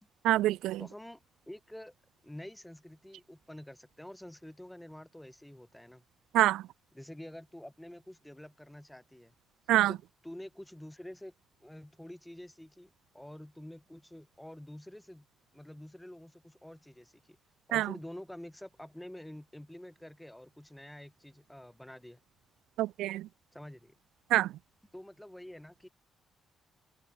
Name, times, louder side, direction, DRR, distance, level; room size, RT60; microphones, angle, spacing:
voice 1, 0.2-0.8 6.3-6.6 9.7-9.9 17.7-17.9 22.8-23.3 24.3-24.5, right 15 dB, 90° right, 1.0 m, -26 dB
voice 2, 0.8-1.9 2.2-6.0 6.9-9.3 9.9-11.3 11.6-15.3 15.5-17.4 17.7-22.2 23.5-24.0 24.9-25.9, left 1 dB, 5° left, 5.5 m, -48 dB
cardioid pair, 90°, 0 cm